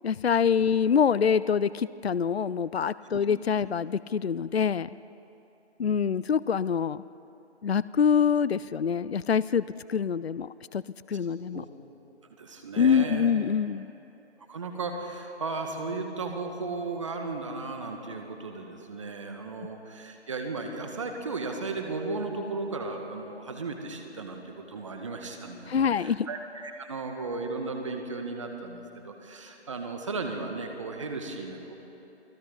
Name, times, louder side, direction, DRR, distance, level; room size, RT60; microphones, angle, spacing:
voice 1, 0.0-5.0 5.8-7.0 7.6-10.8 11.1-11.7 12.8-13.9 25.7-26.3, left 7 dB, 65° left, 18 dB, 0.5 m, -25 dB
voice 2, 12.4-13.3 14.5-31.8, right 3 dB, 30° right, 4 dB, 1.8 m, -35 dB
29.0 x 18.5 x 5.5 m, 3.0 s
figure-of-eight pair, 160°, 33 cm